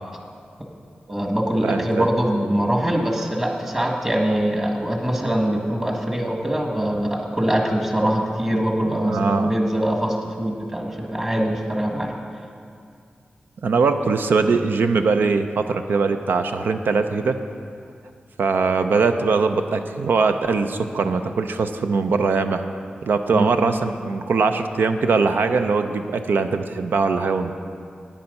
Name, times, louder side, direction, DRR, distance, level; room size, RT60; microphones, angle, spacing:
voice 1, 1.1-12.2 23.3-23.5, right 1 dB, 20° right, 1 dB, 1.6 m, -23 dB
voice 2, 1.6-2.1 8.9-9.5 13.6-17.4 18.4-22.6 23.0-27.5, right 4 dB, 90° right, 8 dB, 0.6 m, -21 dB
10.5 x 8.7 x 5.4 m, 2.3 s
wide cardioid pair, 70°, 3 cm